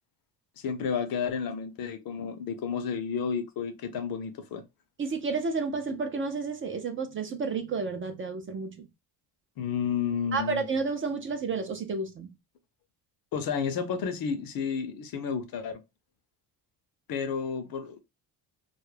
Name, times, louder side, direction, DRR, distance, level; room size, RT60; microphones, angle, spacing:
voice 1, 0.6-4.6 9.6-10.6 13.3-15.8 17.1-18.0, left 6 dB, 60° left, 0.6 m, -31 dB
voice 2, 5.0-8.9 10.3-12.3, right 4 dB, 30° right, 0.4 m, -31 dB
2.3 x 2.0 x 3.1 m
cardioid pair, 115°, 41 cm